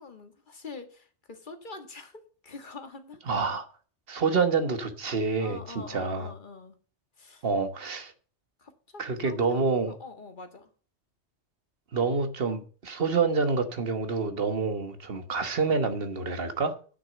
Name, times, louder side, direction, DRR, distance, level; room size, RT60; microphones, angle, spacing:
voice 1, 0.0-3.2 5.4-6.8 7.2-7.5 8.6-9.7 10.0-10.7, left 3 dB, 45° left, 1.7 m, -45 dB
voice 2, 3.3-3.7 4.1-6.3 7.4-8.1 9.0-9.9 11.9-16.8, right 4 dB, 55° right, 1.4 m, -27 dB
9.7 x 6.3 x 7.1 m
omnidirectional pair, 1.2 m